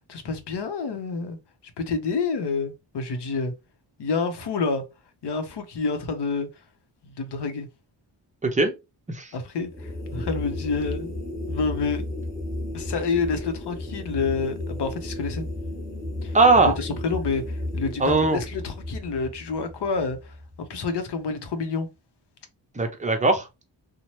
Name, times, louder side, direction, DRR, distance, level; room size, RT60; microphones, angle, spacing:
voice 1, 0.1-1.4 1.8-3.5 4.0-4.8 5.2-6.5 7.0-7.7 9.3-11.1 11.5-12.1 12.7-15.5 16.2-16.3 16.8-21.9, left 4 dB, 65° left, 0.8 m, -28 dB
voice 2, 8.4-8.7 9.1-9.3 16.3-16.7 18.0-18.4 22.8-23.5, right 3 dB, 15° right, 0.6 m, -19 dB
sound 1, 9.6-20.9, left 1 dB, 10° left, 1.0 m, -34 dB
2.8 x 2.1 x 3.0 m
wide cardioid pair, 105°, 44 cm